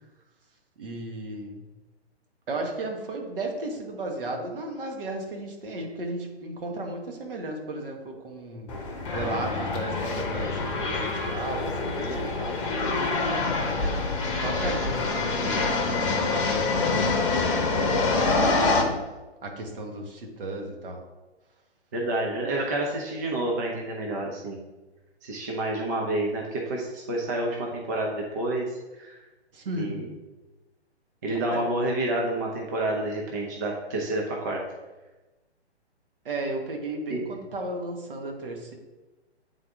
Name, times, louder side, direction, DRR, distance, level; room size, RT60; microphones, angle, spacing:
voice 1, 0.8-1.6 2.5-12.6 13.5-18.0 18.6-19.0 19.4-21.0 29.5-29.9 31.5-31.6 36.2-38.7, right 2 dB, 55° right, 2 dB, 1.5 m, -35 dB
sound 1, 8.7-18.8, left 3 dB, 30° left, 0.9 m, -26 dB
voice 2, 21.9-24.6 25.2-29.2 29.8-30.1 31.2-34.6 37.1-37.2, right 1 dB, 15° right, -1 dB, 0.4 m, -29 dB
8.9 x 3.8 x 3.6 m, 1.1 s
figure-of-eight pair, 130°, 34 cm